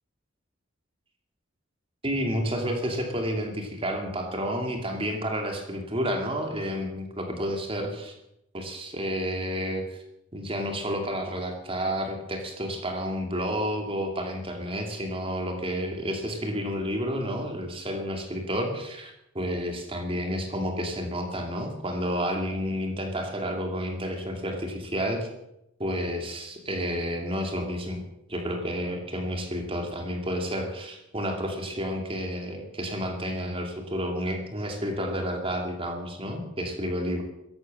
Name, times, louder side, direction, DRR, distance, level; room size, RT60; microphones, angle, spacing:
voice 1, 2.0-8.1 8.5-10.0 10.3-25.3 25.8-28.0 28.3-37.2, equal, 30° right, 3 dB, 2.6 m, -30 dB
15.0 x 11.5 x 7.7 m, 0.83 s
head